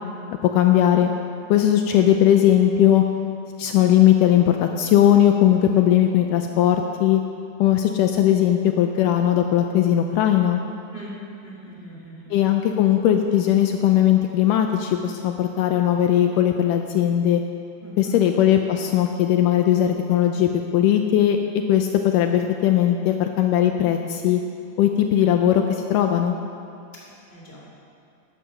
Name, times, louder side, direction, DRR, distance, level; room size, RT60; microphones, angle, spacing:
voice 1, 0.5-1.1 1.5-3.0 3.6-7.2 7.6-10.6 12.3-17.4 18.0-21.4 21.7-24.4 24.8-25.6 25.9-26.4, left 11 dB, 85° left, 5 dB, 1.9 m, -18 dB
voice 2, 10.9-12.3 17.8-18.2 26.9-27.0 27.3-27.6, right 1 dB, 15° left, -5 dB, 3.0 m, -40 dB
12.0 x 11.0 x 6.4 m, 2.5 s
omnidirectional pair, 4.3 m